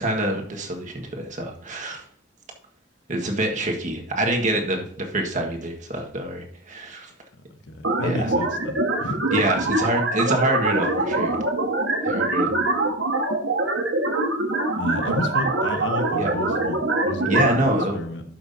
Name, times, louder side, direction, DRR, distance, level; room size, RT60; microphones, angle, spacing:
voice 1, 0.0-2.0 3.1-7.1 8.0-8.3 9.3-11.4 12.0-12.5 16.2-16.3 17.2-18.0, right 1 dB, 40° right, 2 dB, 1.6 m, -26 dB
voice 2, 7.5-9.7 14.8-17.7 17.9-18.2, left 1 dB, 70° left, 7 dB, 1.1 m, -31 dB
sound 1, 7.8-17.8, right 2 dB, 85° right, 1.5 m, -24 dB
12.0 x 5.9 x 2.8 m, 0.62 s
head